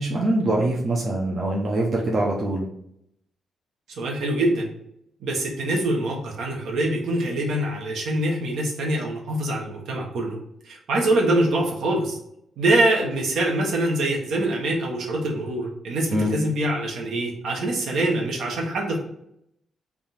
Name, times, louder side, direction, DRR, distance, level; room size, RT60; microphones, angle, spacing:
voice 1, 0.0-2.7 16.1-16.3, right 1 dB, 45° right, -3 dB, 0.6 m, -23 dB
voice 2, 3.9-4.7 5.2-10.4 10.6-12.2 12.6-19.0, right 1 dB, 75° right, -1 dB, 1.0 m, -24 dB
3.6 x 2.4 x 4.1 m, 0.76 s
cardioid pair, 125°, 0 cm